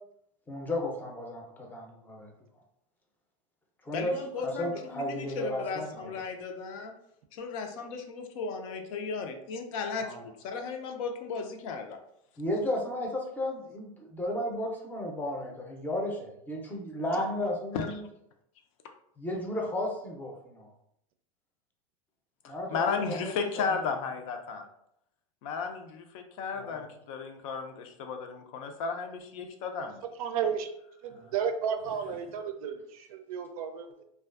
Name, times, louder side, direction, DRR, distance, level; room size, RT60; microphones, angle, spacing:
voice 1, 0.5-2.3 3.8-4.2 4.4-5.9 10.0-10.2 12.4-18.1 19.2-20.7 22.5-23.7 26.6-26.8 31.1-31.3, left 1 dB, 10° left, 0 dB, 0.5 m, -34 dB
voice 2, 3.9-6.9 7.3-12.0 17.7-17.9 22.4-24.6 25.4-30.0, left 5 dB, 65° left, 5 dB, 0.5 m, -35 dB
voice 3, 30.2-30.7 31.0-34.0, right 7 dB, 85° right, 7 dB, 0.4 m, -33 dB
2.4 x 2.3 x 2.3 m, 0.75 s
supercardioid pair, 130°, 18 cm